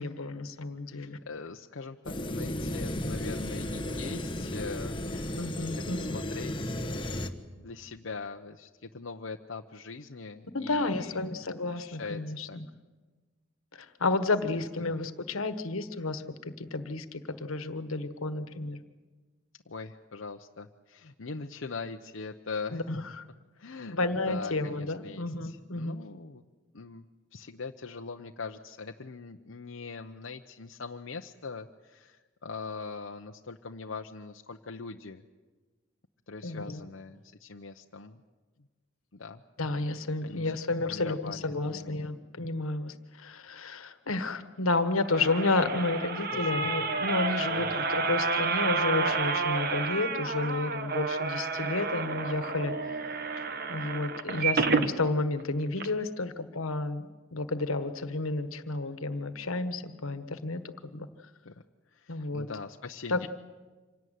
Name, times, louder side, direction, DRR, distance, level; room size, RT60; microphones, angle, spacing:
voice 1, 0.0-1.2 5.4-6.2 10.5-12.7 13.7-18.8 22.7-23.2 23.9-26.0 36.4-36.8 39.6-52.7 53.7-61.1 62.1-62.5 63.1-63.3, left 2 dB, 85° left, 10 dB, 1.4 m, -31 dB
voice 2, 0.9-5.3 5.6-7.3 7.6-11.3 11.7-12.2 12.5-12.6 14.8-15.0 19.7-22.8 23.6-26.4 26.7-27.1 27.3-35.2 36.3-38.2 39.1-39.4 40.2-40.6 40.8-42.1 46.3-46.7 47.5-47.8 61.4-61.5 61.9-63.3, left 4 dB, 70° left, 3 dB, 0.8 m, -42 dB
sound 1, 2.0-7.3, left 1 dB, 25° left, 1.1 m, -34 dB
sound 2, 44.7-54.9 55.4-55.5 55.8-55.9, right 4 dB, 45° right, 1.2 m, -30 dB
26.0 x 17.5 x 9.4 m, 1.3 s
head